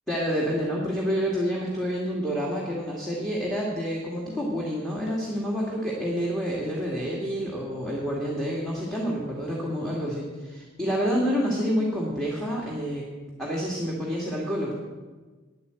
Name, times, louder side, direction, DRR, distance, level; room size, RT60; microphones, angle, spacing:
voice 1, 0.1-13.1 13.4-14.7, equal, ahead, -4 dB, 1.8 m, -28 dB
9.7 x 8.5 x 8.0 m, 1.3 s
head